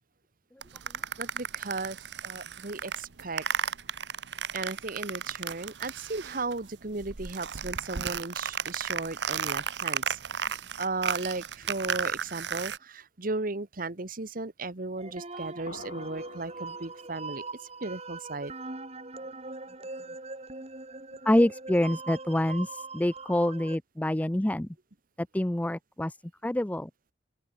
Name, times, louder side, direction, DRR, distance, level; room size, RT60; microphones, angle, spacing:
scraping foam mat, 0.6-6.6 6.9-12.8, right 7 dB, 75° right, 1.0 m, -34 dB
voice 1, 1.2-3.5 4.5-17.4 17.8-18.5, right 3 dB, 55° right, 1.4 m, -36 dB
sound 1, 15.0-23.8, right 3 dB, 35° right, 6.5 m, -41 dB
sound 2, 15.7-17.4, left 3 dB, 80° left, 2.5 m, -48 dB
voice 2, 21.2-24.7 25.2-26.2 26.4-26.9, left 1 dB, 10° left, 0.5 m, -26 dB
open air
head